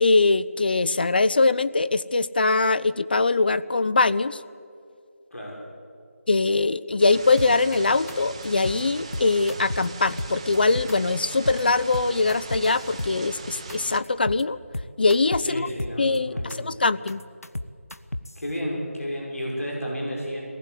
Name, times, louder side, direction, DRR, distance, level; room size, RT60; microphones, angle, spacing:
voice 1, 0.0-4.4 6.3-14.6 15.0-15.7 16.0-17.2, left 3 dB, 40° left, 15 dB, 0.6 m, -22 dB
voice 2, 5.3-5.6 15.5-16.6 18.4-20.4, equal, 70° left, -1 dB, 6.1 m, -31 dB
sound 1, 7.0-14.0, right 4 dB, 25° right, 0.9 m, -39 dB
sound 2, 7.4-7.7 8.1-8.2 8.4-8.8 9.1-9.9 10.2-10.9 11.2-11.6 11.9-13.4 13.7-13.8 14.0-14.4 14.7-15.5 15.8-16.6 16.8-18.4, left 1 dB, 85° left, 1.1 m, -32 dB
22.0 x 19.5 x 8.2 m, 2.4 s
figure-of-eight pair, 165°, 8 cm